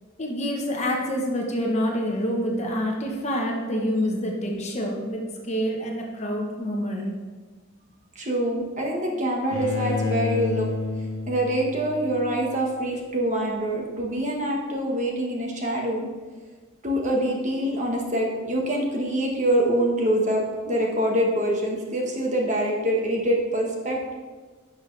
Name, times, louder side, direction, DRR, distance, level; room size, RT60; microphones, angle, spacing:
voice 1, 0.2-7.0, equal, 30° left, 0 dB, 1.1 m, -27 dB
voice 2, 8.1-10.7 11.0-16.1 16.8-24.1, right 1 dB, 35° right, -1 dB, 1.3 m, -25 dB
Bowed string instrument, 9.5-12.6, left 3 dB, 75° left, 0.9 m, -30 dB
11.0 x 6.1 x 3.3 m, 1.4 s
head